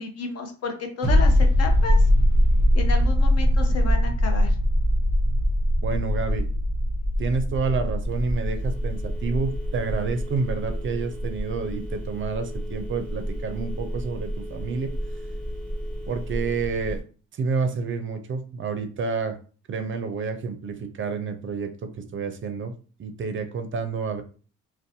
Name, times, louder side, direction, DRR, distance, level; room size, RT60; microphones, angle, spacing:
voice 1, 0.0-2.0 2.7-4.6, left 3 dB, 55° left, 5 dB, 0.6 m, -31 dB
sound 1, 1.0-12.4 12.7-12.8, left 1 dB, 85° left, 0.9 m, -22 dB
voice 2, 5.8-6.4 7.2-14.9 16.1-17.0 17.4-19.4 19.7-22.7 23.0-24.2, right 4 dB, 40° right, 7 dB, 0.4 m, -29 dB
Telephone, 8.0-17.0, equal, 5° left, 0.7 m, -32 dB
2.5 x 2.1 x 2.7 m, 0.38 s
cardioid pair, 90°, 30 cm